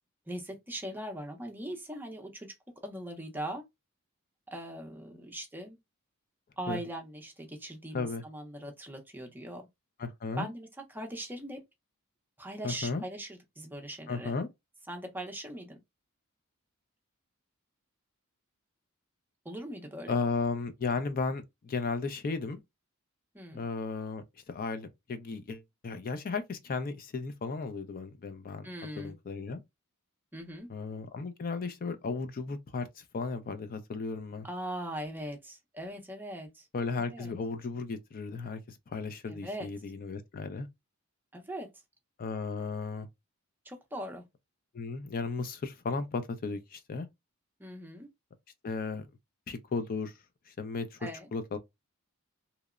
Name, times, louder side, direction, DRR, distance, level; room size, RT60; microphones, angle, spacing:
voice 1, 0.3-2.5 2.8-3.6 4.5-5.8 6.6-9.7 10.4-11.6 12.4-14.3 14.9-15.8 19.4-20.2 23.3-23.6 28.6-29.2 30.3-30.7 34.4-36.7 37.0-37.3 39.3-39.7 41.3-41.7 43.7-44.2 47.6-48.1 51.0-51.3, right 1 dB, 10° right, 0.5 m, -40 dB
voice 2, 10.0-10.5 12.6-13.0 14.1-14.5 20.1-22.6 23.5-28.7 29.0-29.6 30.7-34.5 36.7-38.6 38.9-40.7 42.2-43.1 44.7-47.1 48.6-49.0 49.5-50.1 50.6-51.0 51.3-51.6, left 4 dB, 40° left, 0.4 m, -35 dB
2.8 x 2.0 x 2.3 m
head